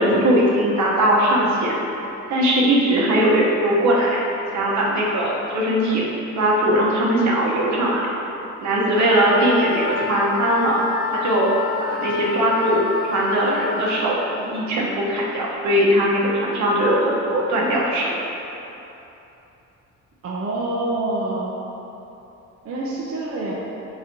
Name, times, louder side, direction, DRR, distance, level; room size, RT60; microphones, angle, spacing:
voice 1, 0.0-1.8 2.3-4.1 4.5-8.1 8.6-10.8 11.1-11.5 11.8-17.0 17.3-18.1, right 1 dB, 70° right, -4 dB, 0.9 m, -20 dB
Wind instrument woodwind instrument, 8.9-14.1, left 6 dB, 75° left, 0.7 m, -29 dB
voice 2, 20.2-21.6 22.6-23.5, right 2 dB, 50° right, -5 dB, 0.6 m, -26 dB
4.4 x 3.9 x 2.7 m, 3.0 s
cardioid pair, 90°, 30 cm